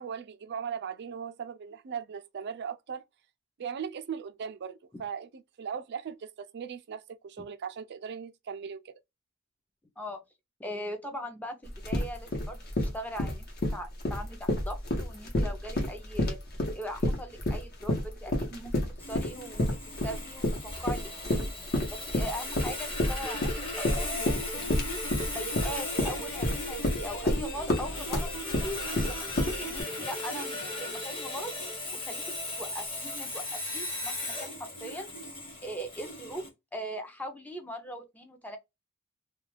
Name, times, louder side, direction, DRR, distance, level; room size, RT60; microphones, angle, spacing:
voice 1, 0.0-3.0 3.6-8.9, right 7 dB, 50° right, 0.4 m, -38 dB
voice 2, 10.6-16.4 16.7-18.7 19.0-21.5 21.9-25.0 25.3-31.5 32.0-35.1 35.6-36.5 36.7-38.6, equal, 5° left, 0.6 m, -40 dB
sound 1, 11.7-29.8, left 1 dB, 45° left, 0.9 m, -29 dB
Sawing, 19.0-36.5, left 2 dB, 25° left, 1.1 m, -38 dB
Guitar, 23.2-32.6, equal, 75° left, 1.0 m, -41 dB
2.4 x 2.3 x 3.2 m
head